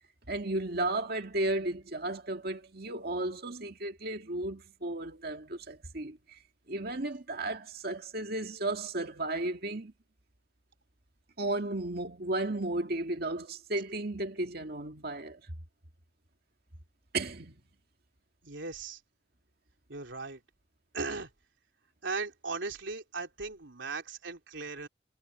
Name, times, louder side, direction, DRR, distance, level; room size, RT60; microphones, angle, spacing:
voice 1, 0.3-6.4 6.7-9.9 11.4-15.4 17.1-17.6, right 2 dB, 55° right, 2.1 m, -34 dB
voice 2, 18.4-19.0 19.9-20.4 20.9-21.3 22.0-24.9, right 4 dB, 75° right, 3.5 m, -37 dB
head